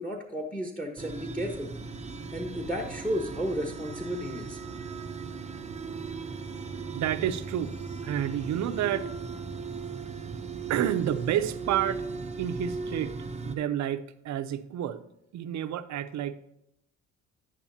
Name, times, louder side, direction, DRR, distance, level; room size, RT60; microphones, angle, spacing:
voice 1, 0.0-1.7 2.3-4.6, equal, 5° left, 3 dB, 1.2 m, -33 dB
sound 1, 1.0-13.6, right 5 dB, 20° right, 0.7 m, -37 dB
voice 2, 6.9-7.8 8.0-9.1 10.7-12.0 12.4-13.2 13.4-15.0 15.3-16.4, right 10 dB, 65° right, 11 dB, 0.7 m, -29 dB
10.5 x 8.6 x 2.8 m, 0.80 s
cardioid pair, 90°, 30 cm